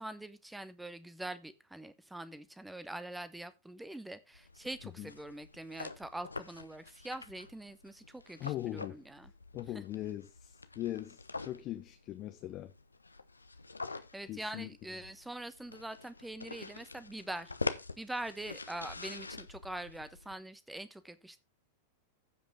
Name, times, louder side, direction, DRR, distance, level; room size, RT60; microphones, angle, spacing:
voice 1, 0.0-9.3 14.1-17.5 18.0-21.4, right 1 dB, 5° right, 1.0 m, -44 dB
sound 1, 4.3-20.4, left 3 dB, 80° left, 0.7 m, -45 dB
voice 2, 8.4-9.0 9.5-12.7 14.2-14.7, left 14 dB, 35° left, 0.9 m, -40 dB
15.0 x 5.3 x 3.7 m
figure-of-eight pair, 90°, 0 cm